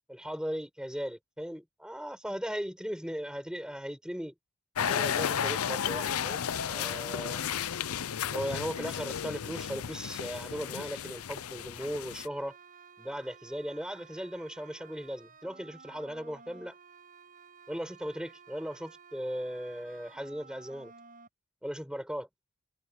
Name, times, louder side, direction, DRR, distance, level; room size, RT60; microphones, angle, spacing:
voice 1, 0.1-4.3 4.9-6.4 6.7-7.4 8.3-12.6 13.0-16.7 17.7-20.9 21.6-22.3, equal, 5° right, 7.4 m, -37 dB
sound 1, 4.8-12.3, left 8 dB, 85° left, 0.6 m, -33 dB
sound 2, 12.0-21.3, right 5 dB, 40° right, 7.9 m, -54 dB
head